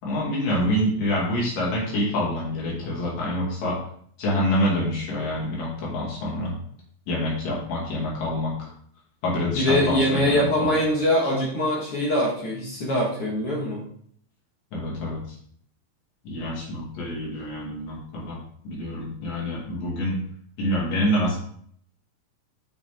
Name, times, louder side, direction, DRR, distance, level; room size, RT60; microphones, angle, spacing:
voice 1, 0.0-3.8 4.2-6.5 7.1-8.7 9.2-10.8 14.7-15.2 16.2-18.4 18.6-20.2 20.6-21.4, left 1 dB, 65° left, -4 dB, 4.0 m, -26 dB
voice 2, 9.5-13.8, left 1 dB, 50° left, -3 dB, 2.0 m, -23 dB
7.5 x 6.0 x 3.6 m, 0.62 s
omnidirectional pair, 4.0 m